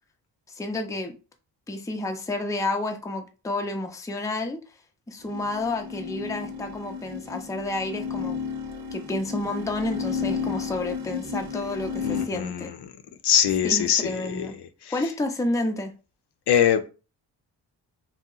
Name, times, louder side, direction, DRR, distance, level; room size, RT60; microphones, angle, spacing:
voice 1, 0.5-1.2 1.7-4.6 5.1-8.4 8.9-12.7 13.6-14.5 14.9-15.9, left 2 dB, 10° left, 0.4 m, -30 dB
sound 1, 5.2-12.3, left 5 dB, 55° right, 0.8 m, -32 dB
voice 2, 12.0-12.8 13.2-14.5 16.5-16.9, left 9 dB, 65° left, 0.5 m, -22 dB
2.8 x 2.0 x 3.8 m
cardioid pair, 85°, 43 cm